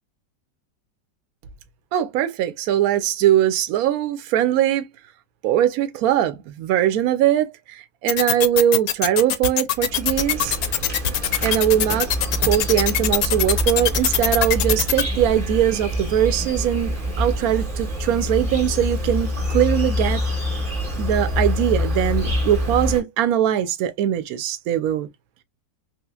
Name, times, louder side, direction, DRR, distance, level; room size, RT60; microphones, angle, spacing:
voice 1, 1.9-4.8 5.4-10.6 11.4-12.1 12.4-20.2 21.0-25.1, right 11 dB, 65° right, 1.0 m, -21 dB
sound 1, 8.1-15.0, left 11 dB, 70° left, 0.9 m, -21 dB
Insect, 9.7-23.0, left 1 dB, 25° right, 1.0 m, -26 dB
3.3 x 3.1 x 2.3 m
omnidirectional pair, 1.9 m